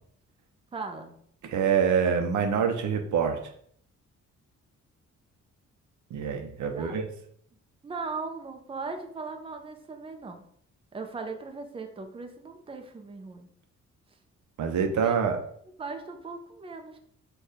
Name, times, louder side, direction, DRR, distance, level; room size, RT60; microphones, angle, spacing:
voice 1, 0.7-1.1 6.7-7.0 7.8-10.4 10.9-13.5 15.0-15.1 15.8-17.0, right 4 dB, 20° right, 5 dB, 0.5 m, -38 dB
voice 2, 1.4-3.5 6.1-7.1 14.6-15.4, right 6 dB, 80° right, 5 dB, 0.7 m, -26 dB
4.5 x 2.4 x 4.8 m, 0.64 s
cardioid pair, 115°, 29 cm